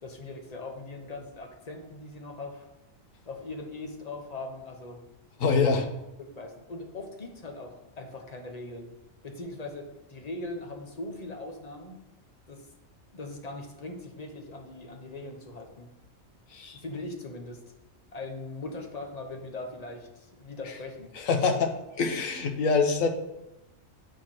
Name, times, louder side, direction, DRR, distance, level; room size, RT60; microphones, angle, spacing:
voice 1, 0.0-2.6 3.3-5.0 5.4-5.9 6.2-8.9 9.2-12.0 12.5-12.7 13.1-15.9 16.7-17.7 18.1-21.1, left 2 dB, 35° left, 3 dB, 1.0 m, -40 dB
voice 2, 5.4-5.8 16.5-16.8 21.1-23.1, left 4 dB, 90° left, 5 dB, 1.3 m, -25 dB
9.7 x 4.6 x 4.5 m, 0.93 s
omnidirectional pair, 1.3 m